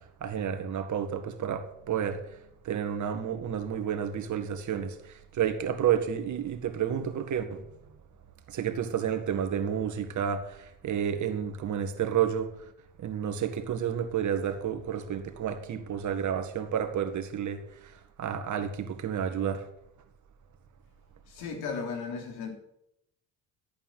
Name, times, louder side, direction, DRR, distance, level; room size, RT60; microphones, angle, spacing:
voice 1, 0.2-2.4 2.6-7.6 8.5-12.7 13.0-19.6, right 8 dB, 50° right, 2.0 m, -31 dB
voice 2, 21.3-22.6, left 5 dB, 80° left, 3.4 m, -35 dB
13.5 x 8.8 x 7.5 m
cardioid pair, 105°, 37 cm